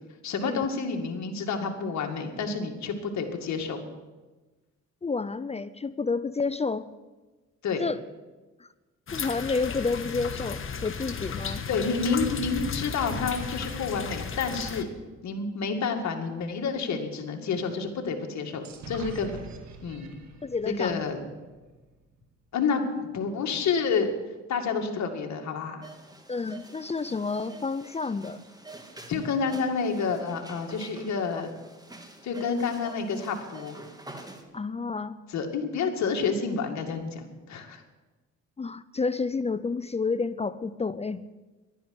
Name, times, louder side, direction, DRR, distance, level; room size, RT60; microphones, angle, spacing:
voice 1, 0.2-3.8 7.6-7.8 11.7-14.9 15.2-19.4 19.8-20.2 20.7-21.2 22.5-24.1 24.5-25.9 29.1-31.5 32.2-33.8 35.3-37.8, left 5 dB, 65° left, 3 dB, 2.3 m, -29 dB
voice 2, 5.0-6.9 7.8-8.0 8.6-8.7 9.1-11.7 20.4-21.0 26.3-28.4 31.3-31.4 34.5-35.2 38.6-41.2, left 4 dB, 20° left, 15 dB, 0.5 m, -30 dB
sound 1, 9.1-14.8, left 5 dB, 45° left, 1.5 m, -34 dB
sound 2, 18.6-22.3, right 2 dB, 65° right, 2.0 m, -45 dB
sound 3, 25.8-34.4, right 2 dB, 15° right, 1.9 m, -47 dB
12.0 x 10.0 x 9.6 m, 1.2 s
cardioid pair, 90°, 30 cm